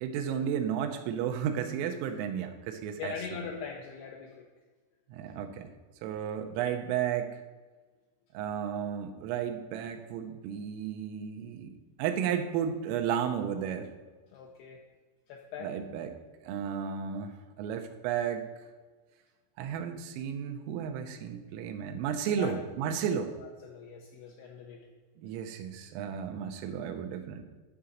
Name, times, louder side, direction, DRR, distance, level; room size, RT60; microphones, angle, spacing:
voice 1, 0.0-3.1 5.1-5.7 6.0-7.4 8.4-13.9 15.6-16.1 16.4-17.3 17.6-18.4 19.6-23.3 25.2-27.4, right 8 dB, 90° right, 5 dB, 3.5 m, -33 dB
voice 2, 3.0-4.5 14.3-14.8 15.3-15.7 22.4-22.6 23.1-24.8, left 7 dB, 80° left, -1 dB, 2.3 m, -41 dB
11.0 x 3.8 x 7.2 m, 1.3 s
omnidirectional pair, 5.8 m